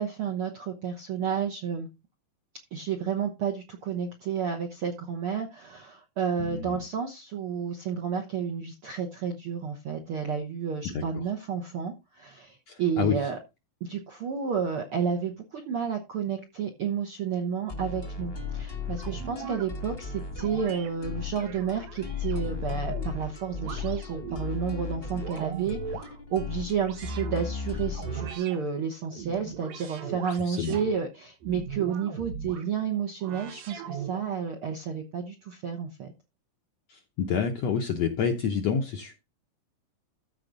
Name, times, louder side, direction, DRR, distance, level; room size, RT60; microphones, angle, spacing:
voice 1, 0.0-1.9 2.7-13.4 13.8-36.1, right 7 dB, 70° right, 2 dB, 1.3 m, -31 dB
voice 2, 6.4-6.8 10.8-11.0 12.7-13.2 30.5-30.8 36.9-39.1, left 7 dB, 70° left, 4 dB, 1.6 m, -28 dB
sound 1, 17.7-28.3, left 5 dB, 30° left, 1.0 m, -36 dB
sound 2, 19.0-19.7 20.4-20.9 21.3-23.2 23.6-24.5 25.0-26.1 26.8-27.4 27.9-28.6 29.1-30.9 31.4-32.7 33.2-34.4, right 6 dB, 85° right, 3.3 m, -40 dB
14.0 x 4.9 x 3.9 m, 0.25 s
omnidirectional pair, 4.0 m